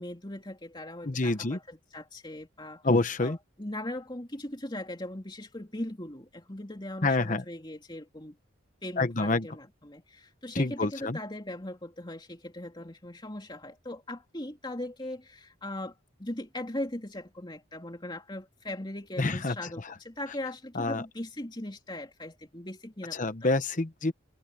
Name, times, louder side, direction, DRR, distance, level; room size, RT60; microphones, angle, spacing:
voice 1, 0.0-2.9 3.2-8.3 8.8-15.9 16.2-23.5, left 1 dB, 20° left, 3.0 m, -39 dB
voice 2, 1.0-1.6 2.8-3.4 7.0-7.4 9.0-9.5 10.5-11.2 19.2-19.5 20.7-21.0 23.1-24.1, left 2 dB, 40° left, 0.9 m, -27 dB
open air
head